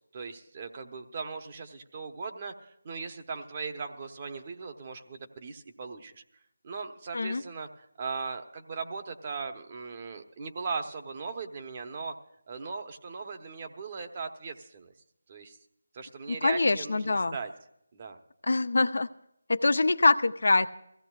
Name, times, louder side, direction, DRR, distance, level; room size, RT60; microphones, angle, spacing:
voice 1, 0.1-6.2 6.6-12.1 12.5-14.9 15.3-15.6 15.9-17.5 17.9-18.2, right 4 dB, 30° right, 5 dB, 1.0 m, -38 dB
voice 2, 16.3-17.3 18.5-19.1 19.5-20.7, left 3 dB, 70° left, 10 dB, 0.6 m, -24 dB
22.5 x 16.0 x 2.4 m, 0.76 s
figure-of-eight pair, 165°, 0 cm